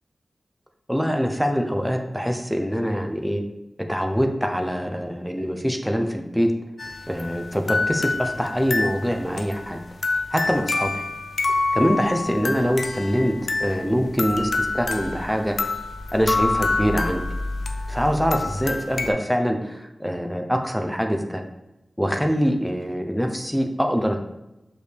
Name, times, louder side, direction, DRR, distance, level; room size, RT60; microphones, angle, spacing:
voice 1, 0.9-3.4 3.9-6.5 7.1-9.8 10.3-11.0 11.7-15.7 16.1-17.2 17.9-21.4 22.0-24.2, equal, ahead, 4 dB, 0.6 m, -24 dB
sound 1, 6.8-19.1, left 3 dB, 75° left, 0.5 m, -27 dB
6.3 x 5.3 x 3.3 m, 0.95 s
wide cardioid pair, 90°, 0 cm